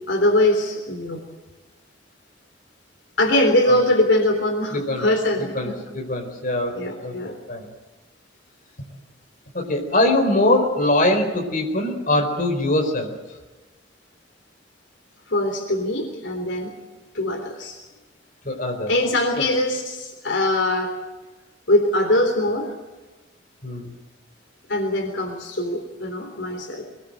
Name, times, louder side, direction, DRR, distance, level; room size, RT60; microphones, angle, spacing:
voice 1, 0.1-1.2 3.2-5.8 6.7-7.4 15.3-16.7 17.1-17.8 18.9-20.9 21.7-22.7 24.7-26.8, left 1 dB, 70° left, 4 dB, 3.6 m, -22 dB
voice 2, 4.7-5.1 5.5-7.7 9.5-13.1 18.4-18.9 19.4-19.5 23.6-23.9, left 1 dB, 45° left, 4 dB, 4.5 m, -22 dB
24.0 x 20.5 x 7.7 m, 1.2 s
head